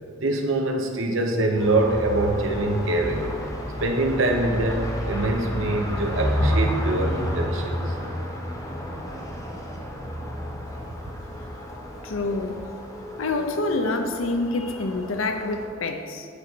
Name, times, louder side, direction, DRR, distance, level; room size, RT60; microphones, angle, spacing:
voice 1, 0.2-3.3 3.8-7.9, right 2 dB, 70° right, 3 dB, 0.8 m, -24 dB
sound 1, 1.6-15.6, equal, 15° left, 0.8 m, -30 dB
voice 2, 12.0-12.6 13.2-16.3, left 2 dB, 80° left, 6 dB, 0.6 m, -27 dB
8.4 x 4.1 x 4.5 m, 2.2 s
head